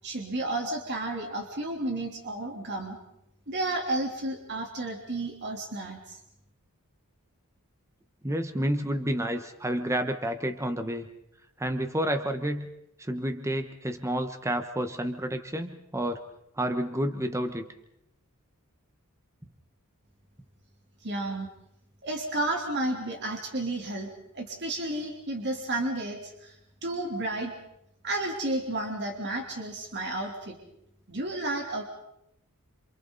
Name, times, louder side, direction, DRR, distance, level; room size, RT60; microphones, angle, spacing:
voice 1, 0.0-3.0 3.5-6.2 21.0-21.5 22.0-24.1 24.3-26.5 26.8-27.5 28.0-30.6 31.1-31.8, right 2 dB, 50° right, 0 dB, 3.5 m, -32 dB
voice 2, 8.2-11.1 11.6-12.7 13.0-16.2 16.6-17.7, right 1 dB, 15° right, 8 dB, 1.2 m, -30 dB
29.0 x 27.5 x 4.1 m, 0.79 s
head